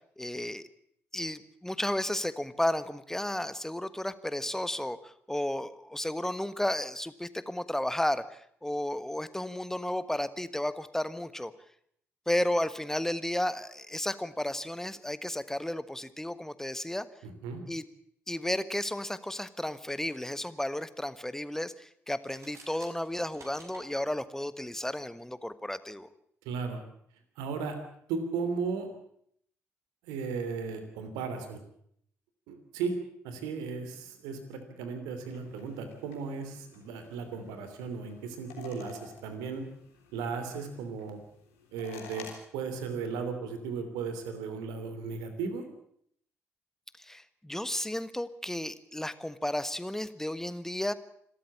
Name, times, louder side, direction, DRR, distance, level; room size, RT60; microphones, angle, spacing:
voice 1, 0.2-0.6 1.1-11.5 12.3-17.1 17.7-17.8 18.3-26.1 47.0-50.9, left 1 dB, 5° left, 15 dB, 1.4 m, -33 dB
voice 2, 17.2-17.6 26.4-26.8 27.4-27.8 28.1-28.9 30.0-31.6 32.5-33.0 33.2-39.7 40.1-41.2 41.7-45.6, right 5 dB, 70° right, 8 dB, 3.0 m, -36 dB
sound 1, 22.2-23.9, right 3 dB, 45° right, 6.1 m, -52 dB
sound 2, 35.2-42.3, left 6 dB, 80° left, 3.5 m, -52 dB
26.5 x 13.5 x 8.6 m, 0.68 s
figure-of-eight pair, 40°, 7 cm